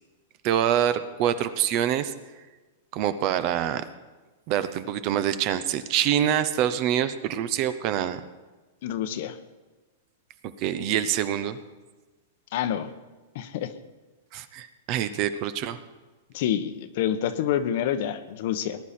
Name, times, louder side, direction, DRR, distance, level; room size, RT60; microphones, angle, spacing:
voice 1, 0.4-2.1 2.9-3.8 4.5-8.2 10.6-11.6 14.3-15.8, right 10 dB, 35° right, 12 dB, 0.7 m, -25 dB
voice 2, 8.8-9.4 12.5-12.9 13.3-13.7 16.3-18.8, left 10 dB, 50° left, 11 dB, 1.0 m, -27 dB
19.5 x 11.0 x 4.3 m, 1.2 s
supercardioid pair, 165°, 0 cm